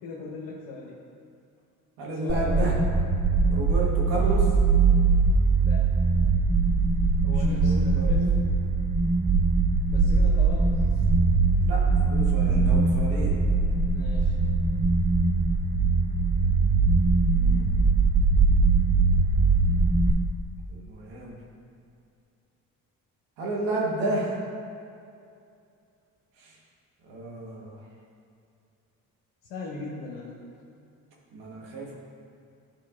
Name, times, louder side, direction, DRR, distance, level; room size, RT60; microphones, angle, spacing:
voice 1, 0.0-1.0 2.2-2.7 5.5-5.9 7.2-8.5 9.9-10.7 13.9-14.3 29.5-30.5, left 3 dB, 80° left, -4 dB, 0.9 m, -38 dB
voice 2, 2.0-2.8 3.5-4.5 7.3-8.2 10.6-10.9 11.6-13.4 17.3-17.7 20.7-21.4 23.4-24.4 26.4-26.6 27.0-27.9 31.3-32.0, right 2 dB, 85° right, -3 dB, 1.3 m, -32 dB
sound 1, 2.3-20.1, right 4 dB, 15° right, 0.6 m, -22 dB
10.0 x 5.0 x 2.4 m, 2.5 s
hypercardioid pair, 50°, 41 cm